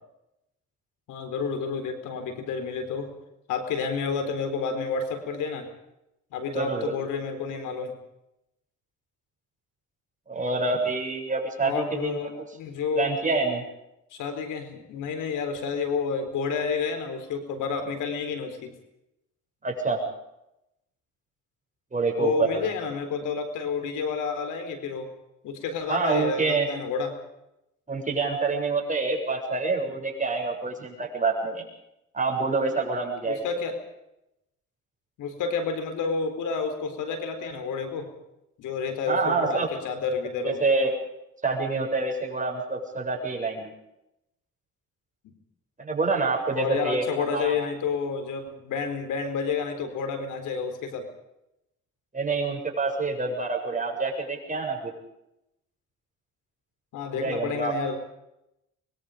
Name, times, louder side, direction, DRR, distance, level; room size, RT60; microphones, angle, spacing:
voice 1, 1.1-3.1 3.5-5.7 6.3-7.9 11.6-13.1 14.1-18.7 22.2-25.1 25.4-27.2 33.3-33.8 35.2-38.1 38.6-40.6 46.5-51.1 56.9-58.0, left 5 dB, 85° left, 7 dB, 4.3 m, -30 dB
voice 2, 6.5-7.0 10.3-12.2 13.0-13.6 19.6-20.0 21.9-22.7 25.9-26.7 27.9-31.6 32.1-33.4 39.1-39.7 40.4-40.9 41.4-43.7 45.8-47.0 47.3-47.6 52.1-54.9 57.1-57.7, right 3 dB, 25° right, 1 dB, 7.6 m, -27 dB
25.5 x 22.0 x 5.2 m, 0.85 s
cardioid pair, 90°, 30 cm